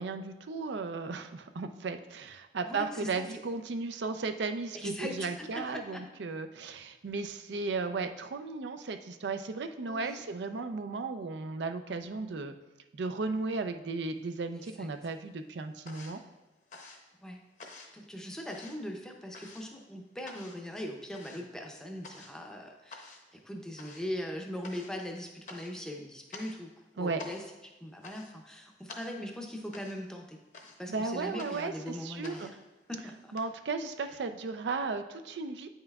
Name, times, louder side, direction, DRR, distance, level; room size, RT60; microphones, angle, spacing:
voice 1, 0.0-12.5 12.9-16.2 27.0-27.2 30.9-32.5 33.3-35.7, right 4 dB, 75° right, 8 dB, 0.4 m, -35 dB
voice 2, 2.6-3.3 4.7-6.0 9.9-10.2 14.8-14.9 17.2-17.4 17.9-26.7 26.9-30.4 30.8-32.6 32.9-33.3, equal, 5° left, 1 dB, 0.6 m, -40 dB
sound 1, 14.1-14.9 15.1-33.4, left 3 dB, 45° left, 0.7 m, -51 dB
8.8 x 5.5 x 2.3 m, 1.0 s
head